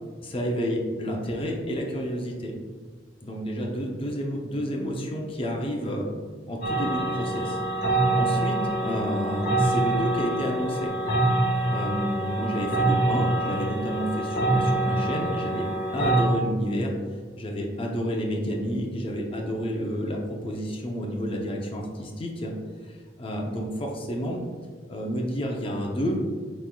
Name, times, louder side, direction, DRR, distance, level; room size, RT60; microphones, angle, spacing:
voice 1, 0.2-2.5 3.2-6.1 6.5-7.6 8.1-10.9 11.7-16.9 17.4-22.5 22.8-24.4 24.9-26.2, equal, 30° left, 0 dB, 0.5 m, -30 dB
sound 1, 6.6-16.2, right 2 dB, 60° left, 1.4 m, -25 dB
6.1 x 3.6 x 2.2 m, 1.6 s
head